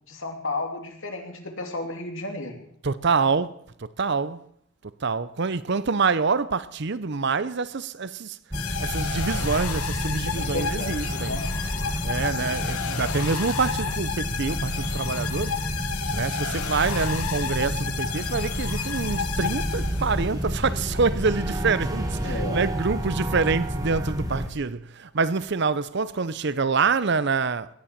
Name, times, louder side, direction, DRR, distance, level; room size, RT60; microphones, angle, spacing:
voice 1, 0.1-2.7 10.3-11.5 22.2-22.7, left 2 dB, 65° left, 3.0 m, -33 dB
voice 2, 2.8-4.4 5.0-8.4 8.8-11.3 12.0-15.5 16.1-27.7, right 4 dB, 55° right, 0.7 m, -26 dB
sound 1, 8.5-20.3, left 7 dB, 90° left, 1.2 m, -32 dB
sound 2, 8.5-24.5, equal, 15° right, 1.7 m, -30 dB
18.5 x 9.9 x 7.5 m
head